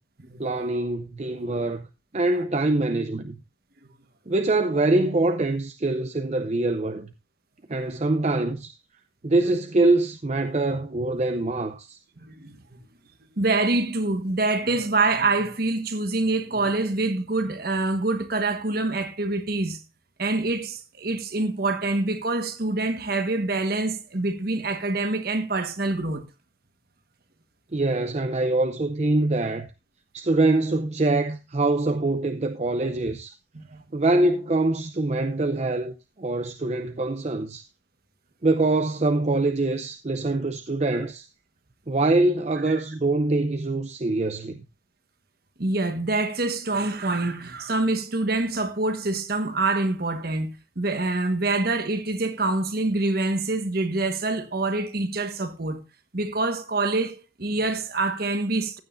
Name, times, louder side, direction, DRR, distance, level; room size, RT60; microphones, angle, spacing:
voice 1, 0.4-1.9 2.1-3.4 4.3-7.1 7.7-8.8 9.2-12.0 27.7-29.7 30.1-33.3 33.9-37.7 38.4-41.3 41.9-44.6, right 2 dB, 35° right, 0.5 m, -24 dB
voice 2, 12.2-12.6 13.4-19.8 20.2-26.2 33.5-33.8 42.7-42.8 45.6-50.5 50.8-55.8 56.1-58.8, right 2 dB, 50° right, 1.4 m, -26 dB
15.0 x 9.3 x 2.6 m
head